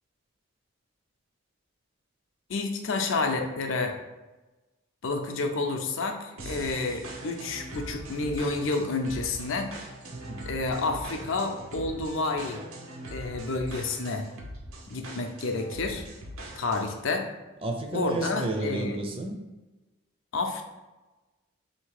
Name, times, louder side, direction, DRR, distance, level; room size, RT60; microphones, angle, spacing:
voice 1, 2.5-4.0 5.0-9.7 10.5-12.6 13.1-14.3 14.9-16.0 16.6-17.3 17.9-19.0 20.3-20.6, left 3 dB, 70° left, 4 dB, 0.5 m, -29 dB
sound 1, 6.4-17.0, right 1 dB, 90° right, 0.7 m, -41 dB
voice 2, 10.1-10.4 17.6-19.4, right 2 dB, 25° right, 3 dB, 0.4 m, -32 dB
3.5 x 2.8 x 4.7 m, 1.1 s
head